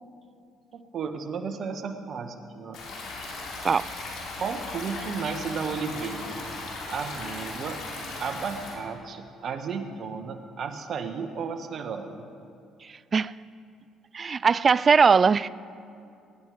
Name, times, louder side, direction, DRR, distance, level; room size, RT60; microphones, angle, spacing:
voice 1, 0.7-2.8 4.4-6.4 6.9-7.8 8.2-12.3, right 5 dB, 55° right, 7 dB, 1.4 m, -33 dB
Stream, 2.7-8.7, left 3 dB, 70° left, 3.4 m, -37 dB
voice 2, 14.1-15.5, right 5 dB, 40° right, 20 dB, 0.3 m, -20 dB
20.0 x 11.0 x 4.8 m, 2.4 s
supercardioid pair, 65°, 0 cm